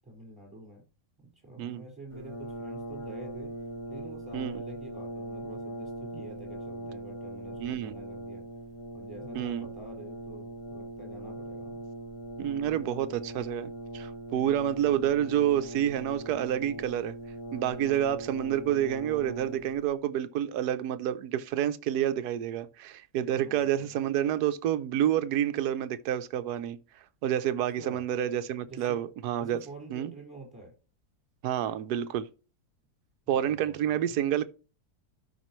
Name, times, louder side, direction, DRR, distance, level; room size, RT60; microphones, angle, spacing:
voice 1, 0.0-0.8 1.2-3.6 3.9-8.5 8.9-11.8 23.4-24.0 27.8-28.1 28.6-29.0 29.3-30.7 33.3-34.2, right 2 dB, 5° right, 4.9 m, -47 dB
Brass instrument, 2.1-19.9, right 1 dB, 20° left, 1.6 m, -40 dB
voice 2, 7.6-7.9 9.3-9.7 12.4-17.1 17.5-26.8 27.2-29.6 29.9-30.1 31.4-32.3 33.3-34.5, right 10 dB, 70° right, 1.2 m, -29 dB
12.5 x 5.1 x 3.1 m
omnidirectional pair, 1.8 m